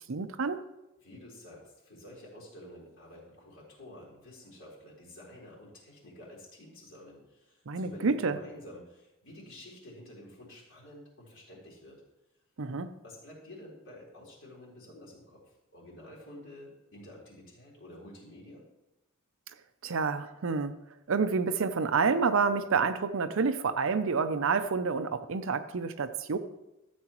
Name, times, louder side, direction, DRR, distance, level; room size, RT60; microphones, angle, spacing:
voice 1, 0.1-0.6 7.7-8.4 12.6-12.9 19.8-20.7 21.1-26.4, right 5 dB, 65° right, 11 dB, 0.6 m, -28 dB
voice 2, 1.0-12.0 13.0-18.7, left 1 dB, 65° left, -4 dB, 3.9 m, -50 dB
13.5 x 8.0 x 3.0 m, 0.94 s
head